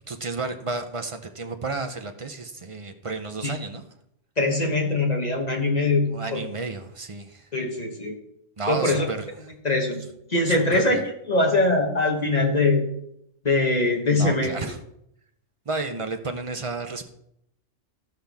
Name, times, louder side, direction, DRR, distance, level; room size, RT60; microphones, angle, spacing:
voice 1, 0.1-3.8 6.1-7.5 8.6-9.3 10.4-11.0 14.2-14.8 15.7-17.1, right 3 dB, 35° right, 5 dB, 0.5 m, -32 dB
voice 2, 4.4-6.4 7.5-8.2 8.7-9.1 9.6-10.0 10.3-11.0 11.3-12.8 13.4-14.5, left 2 dB, 35° left, 1 dB, 1.2 m, -22 dB
14.5 x 5.7 x 3.5 m, 0.75 s
omnidirectional pair, 1.3 m